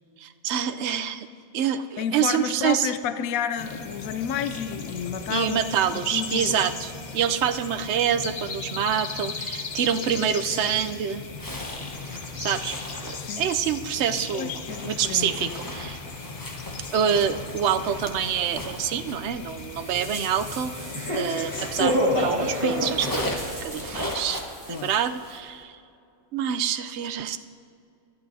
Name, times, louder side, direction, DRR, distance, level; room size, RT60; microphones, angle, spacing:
voice 1, 0.2-1.3 1.5-2.9 5.3-11.2 12.4-12.8 13.0-14.5 14.8-16.0 16.9-20.7 21.1-23.3 23.6-24.4 24.7-25.8 26.3-27.4, right 8 dB, 65° right, 10 dB, 0.7 m, -26 dB
voice 2, 2.0-5.6 5.9-6.5 13.1-13.5 14.3-15.9 24.7-24.9, left 8 dB, 75° left, 11 dB, 1.0 m, -31 dB
sound 1, 3.6-23.3, left 4 dB, 40° left, 0.7 m, -37 dB
Zipper (clothing), 11.3-22.2 22.5-25.5, left 1 dB, 15° left, 1.1 m, -38 dB
sound 2, 19.8-24.6 24.9-25.0, equal, 20° right, 1.8 m, -28 dB
21.0 x 12.5 x 2.7 m, 2.5 s
omnidirectional pair, 1.5 m